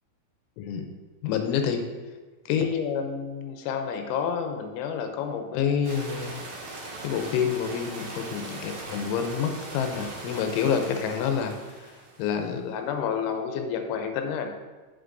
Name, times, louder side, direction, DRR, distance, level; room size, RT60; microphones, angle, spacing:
voice 1, 0.6-0.9 1.2-1.9 2.5-6.4 7.0-11.6 12.2-14.5, left 7 dB, 85° left, 5 dB, 3.0 m, -28 dB
sound 1, 5.8-12.4, right 2 dB, 70° right, 1.7 m, -40 dB
8.0 x 7.3 x 2.6 m, 1.3 s
omnidirectional pair, 5.5 m